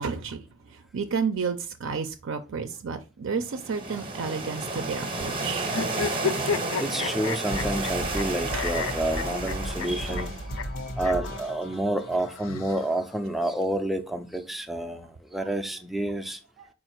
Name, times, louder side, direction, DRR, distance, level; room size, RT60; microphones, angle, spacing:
voice 1, 0.0-6.0 8.5-8.7 10.1-10.2 16.6-16.7, right 5 dB, 65° right, 0.5 m, -32 dB
sound 1, 3.4-10.5, right 3 dB, 25° right, 0.7 m, -32 dB
sound 2, 5.7-8.2 8.5-9.9 10.2-10.3 10.6-10.7 11.0-11.1 12.2-13.2, left 6 dB, 70° left, 0.5 m, -31 dB
voice 2, 6.8-10.4 11.0-16.4, right 1 dB, ahead, 0.4 m, -29 dB
sound 3, 7.5-13.5, equal, 85° left, 1.3 m, -36 dB
4.8 x 2.5 x 4.4 m
head